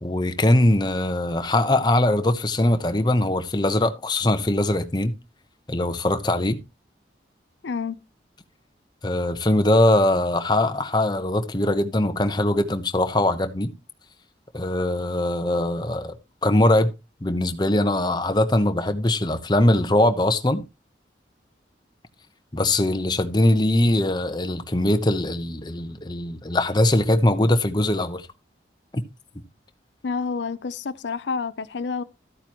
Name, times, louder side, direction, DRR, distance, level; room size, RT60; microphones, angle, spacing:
voice 1, 0.0-5.1 5.7-6.6 9.0-13.7 14.5-16.1 16.4-16.9 17.2-20.6 22.5-28.3 28.9-29.0, left 1 dB, 25° left, 0.9 m, -21 dB
voice 2, 7.6-8.0 30.0-32.0, left 5 dB, 80° left, 0.5 m, -28 dB
13.0 x 9.0 x 3.0 m
head